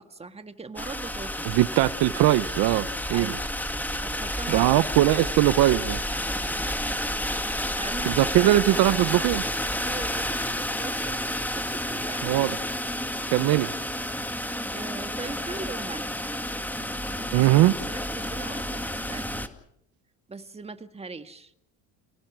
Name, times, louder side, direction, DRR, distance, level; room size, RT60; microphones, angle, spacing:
voice 1, 0.0-1.6 3.1-3.5 4.0-4.7 7.8-8.8 9.8-11.2 11.6-12.4 14.7-16.2 17.2-19.3 20.3-21.5, right 3 dB, 15° right, 1.7 m, -40 dB
sound 1, 0.8-19.5, left 1 dB, 5° left, 2.0 m, -30 dB
voice 2, 1.5-3.3 4.5-6.0 8.1-9.4 12.2-12.5 13.3-13.7 17.3-17.7, right 16 dB, 70° right, 0.9 m, -20 dB
29.5 x 19.0 x 6.2 m
cardioid pair, 105°, 37 cm